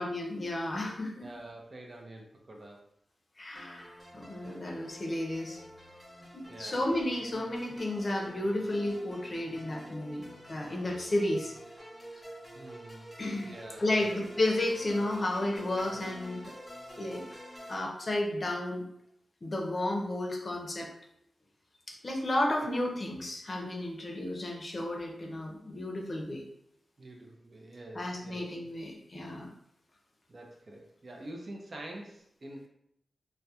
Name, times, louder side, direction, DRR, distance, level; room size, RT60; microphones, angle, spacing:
voice 1, 0.0-1.3 3.4-5.6 6.3-11.5 13.2-13.5 13.8-16.4 17.0-17.2 17.7-18.9 19.4-20.9 22.0-26.4 27.9-29.5, left 1 dB, 45° left, 0 dB, 0.6 m, -32 dB
voice 2, 1.2-2.8 6.5-6.9 12.5-13.1 13.4-14.2 27.0-28.7 30.3-32.7, right 1 dB, 50° right, 0 dB, 0.5 m, -46 dB
sound 1, 3.5-17.8, equal, 5° left, 1.0 m, -48 dB
2.3 x 2.1 x 2.7 m, 0.73 s
cardioid pair, 70°, 0 cm